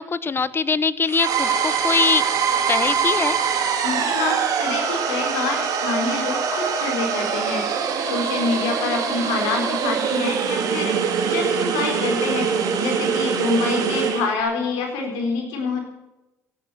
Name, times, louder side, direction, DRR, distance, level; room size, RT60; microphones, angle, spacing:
voice 1, 0.0-2.2 2.7-3.4, left 5 dB, 35° left, 17 dB, 1.0 m, -22 dB
sound 1, 1.1-14.3, right 6 dB, 65° right, 2.8 m, -23 dB
voice 2, 3.8-7.7 8.0-15.8, left 3 dB, 80° left, 2 dB, 4.0 m, -26 dB
17.0 x 9.5 x 6.9 m, 0.96 s
supercardioid pair, 65°, 7 cm